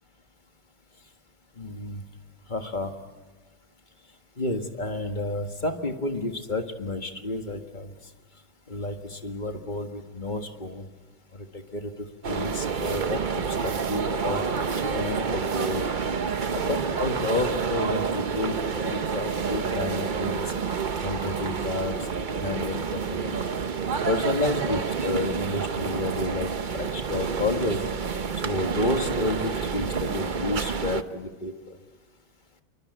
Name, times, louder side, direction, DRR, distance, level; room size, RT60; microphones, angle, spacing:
voice 1, 1.6-2.0 2.5-2.9 4.4-7.9 8.7-10.9 11.3-14.4 14.9-15.9 16.5-18.6 18.8-20.5 21.0-22.1 22.4-23.5 24.0-27.8 28.4-31.8, left 2 dB, 25° left, 5 dB, 1.7 m, -31 dB
sound 1, 12.2-31.0, right 5 dB, 45° right, 0.6 m, -29 dB
26.5 x 23.5 x 8.1 m, 1.3 s
omnidirectional pair, 1.9 m